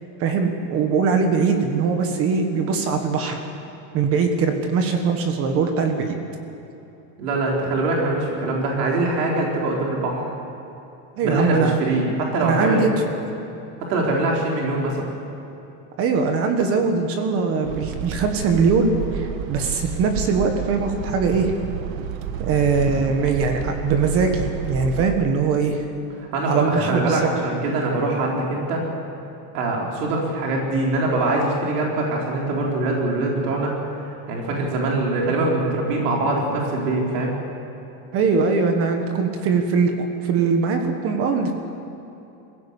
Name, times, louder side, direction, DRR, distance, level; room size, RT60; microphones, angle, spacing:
voice 1, 0.2-3.4 3.9-6.2 11.2-11.8 12.4-12.9 16.0-21.5 22.4-25.8 26.5-27.3 38.1-39.9 40.2-41.5, right 5 dB, 30° right, 5 dB, 1.5 m, -21 dB
voice 2, 7.2-10.3 11.2-12.9 13.8-15.1 26.3-28.8 29.5-33.7 34.0-37.4, right 2 dB, 90° right, -2 dB, 4.4 m, -23 dB
sound 1, 17.6-25.2, right 8 dB, 60° right, 1.3 m, -30 dB
22.5 x 16.0 x 8.4 m, 3.0 s
supercardioid pair, 180°, 46 cm